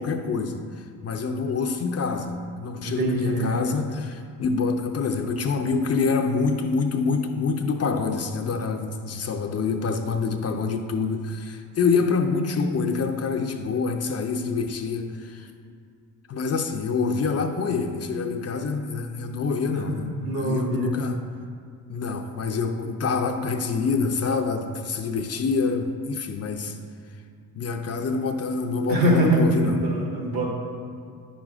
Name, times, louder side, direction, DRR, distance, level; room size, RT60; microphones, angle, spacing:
voice 1, 0.0-15.5 16.3-21.2 21.9-26.8 27.5-29.9, left 4 dB, 35° left, 5 dB, 0.6 m, -26 dB
voice 2, 2.8-3.5 19.6-19.8 20.2-20.9 28.9-30.5, right 1 dB, 55° right, 0 dB, 1.7 m, -23 dB
10.0 x 6.2 x 2.5 m, 2.2 s
supercardioid pair, 65°, 42 cm